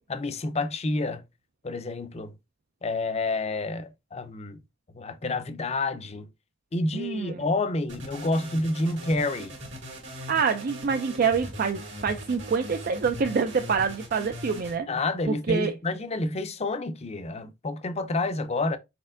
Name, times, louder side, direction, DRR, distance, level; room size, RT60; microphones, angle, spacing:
voice 1, 0.1-1.2 1.6-2.3 2.8-4.6 4.9-6.3 6.7-9.5 14.9-18.8, left 2 dB, 35° left, 0.6 m, -29 dB
voice 2, 6.9-7.4 10.3-14.9 15.3-15.7, right 5 dB, 50° right, 0.4 m, -26 dB
sound 1, 7.9-14.7, equal, 70° right, 1.9 m, -40 dB
4.4 x 4.3 x 2.5 m
head